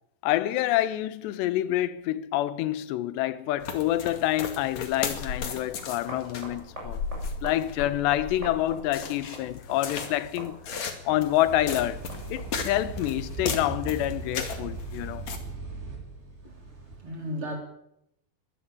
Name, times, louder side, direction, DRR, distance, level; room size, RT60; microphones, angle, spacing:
voice 1, 0.2-7.0 7.4-10.6 11.1-12.0 12.3-15.3, left 14 dB, 75° left, 3.0 m, -27 dB
sound 1, 3.6-15.4, left 5 dB, 45° left, 2.9 m, -36 dB
sound 2, 5.7-12.6, right 1 dB, 15° right, 8.0 m, -45 dB
sound 3, 11.5-17.0, right 3 dB, 80° right, 7.4 m, -38 dB
voice 2, 16.4-17.6, equal, 30° right, 4.6 m, -36 dB
22.0 x 15.0 x 8.8 m
omnidirectional pair, 5.2 m